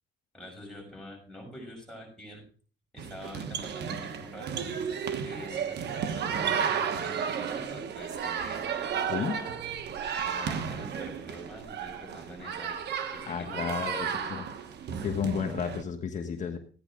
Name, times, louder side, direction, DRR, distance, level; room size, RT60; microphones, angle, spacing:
voice 1, 0.3-2.4 2.9-4.8 5.2-9.6 10.2-12.7 13.1-14.5, equal, 5° left, -2 dB, 6.3 m, -45 dB
sound 1, 3.0-15.8, right 7 dB, 60° right, 1.3 m, -33 dB
voice 2, 13.3-14.4 15.0-16.6, left 6 dB, 40° left, 5 dB, 1.2 m, -32 dB
14.5 x 9.7 x 3.8 m, 0.39 s
cardioid pair, 125°, 19 cm